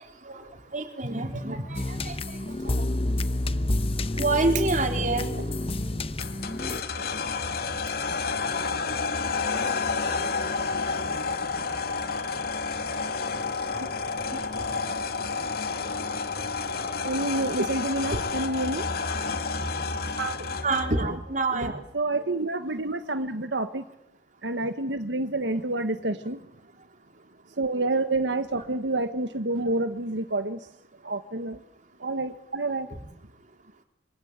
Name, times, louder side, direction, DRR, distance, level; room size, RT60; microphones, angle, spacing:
voice 1, 0.7-2.1 4.2-5.4 20.6-21.7, right 3 dB, 45° right, 4.1 m, -27 dB
sound 1, 1.7-6.8, left 1 dB, 35° left, 1.1 m, -28 dB
sound 2, 6.2-21.0, left 4 dB, 60° left, 2.2 m, -30 dB
voice 2, 13.7-14.2 15.2-15.3 17.0-18.8 20.2-20.6 21.0-21.2 21.5-23.8 24.4-26.5 27.6-30.6 31.0-31.6 32.0-32.9, right 2 dB, 90° right, 1.5 m, -29 dB
26.5 x 25.0 x 8.2 m
head